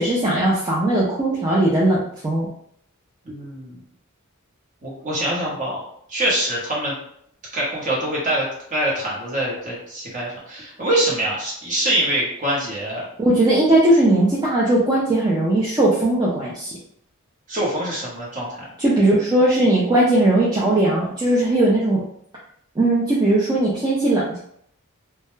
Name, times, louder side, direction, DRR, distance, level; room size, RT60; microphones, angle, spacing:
voice 1, 0.0-2.5 13.2-16.7 18.8-22.0 22.8-24.4, right 1 dB, 20° right, -6 dB, 0.4 m, -18 dB
voice 2, 3.2-3.8 4.8-5.8 6.1-6.9 7.5-13.0 17.5-18.6, right 1 dB, 35° right, -5 dB, 0.9 m, -24 dB
2.2 x 2.1 x 3.1 m, 0.69 s
head